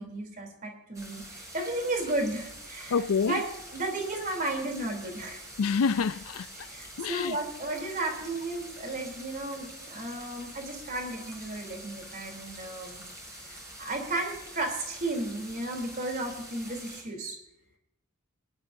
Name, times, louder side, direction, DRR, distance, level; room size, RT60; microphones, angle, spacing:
voice 1, 0.0-3.4 3.7-5.4 6.7-13.0 13.8-17.3, right 2 dB, 40° right, 3.4 m, -34 dB
sound 1, 0.9-17.0, right 1 dB, 15° right, 4.2 m, -46 dB
voice 2, 2.9-3.4 5.6-6.5 7.0-7.4, left 5 dB, 75° left, 0.4 m, -27 dB
23.5 x 12.5 x 2.7 m
head